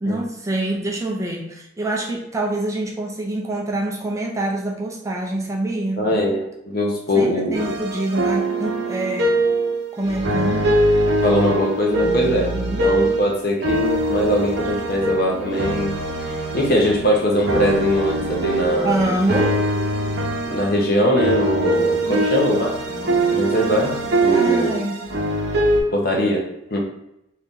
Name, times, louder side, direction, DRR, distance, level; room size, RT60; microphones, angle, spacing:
voice 1, 0.0-6.0 7.1-9.4 9.9-10.8 12.5-12.8 18.8-19.6 22.1-22.3 24.3-25.0, right 2 dB, 15° right, -1 dB, 0.4 m, -25 dB
voice 2, 6.0-7.7 11.2-19.2 20.5-22.8 23.3-24.8 25.9-26.8, equal, 50° left, 0 dB, 0.8 m, -21 dB
sound 1, 7.5-13.3 13.6-25.8, right 1 dB, 60° right, 0.7 m, -22 dB
2.8 x 2.5 x 3.6 m, 0.82 s
head